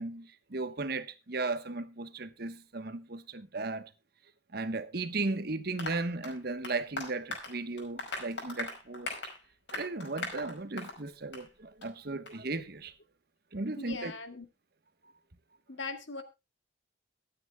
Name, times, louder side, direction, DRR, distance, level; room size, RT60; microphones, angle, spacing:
voice 1, 0.0-3.9 4.5-9.1 9.7-12.9 13.5-14.1, right 3 dB, 55° right, 1.1 m, -36 dB
Applause, 5.8-11.0 11.3-11.5 11.8-11.9 12.3-12.4, left 2 dB, 70° left, 5.4 m, -40 dB
voice 2, 13.8-14.5 15.7-16.2, left 3 dB, 90° left, 2.1 m, -40 dB
23.5 x 8.9 x 2.2 m
head